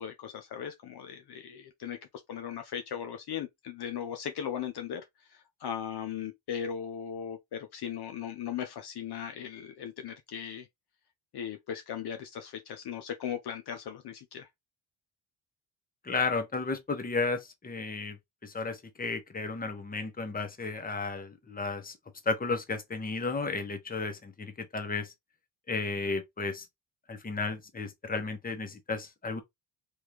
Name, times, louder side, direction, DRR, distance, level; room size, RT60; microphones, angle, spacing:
voice 1, 0.0-2.0 2.3-10.7 11.3-14.5, left 8 dB, 50° left, 0.7 m, -38 dB
voice 2, 16.0-18.2 18.4-21.9 22.3-25.1 25.7-26.7 27.1-29.4, left 3 dB, 20° left, 0.9 m, -33 dB
3.2 x 2.5 x 2.9 m
supercardioid pair, 65°, 49 cm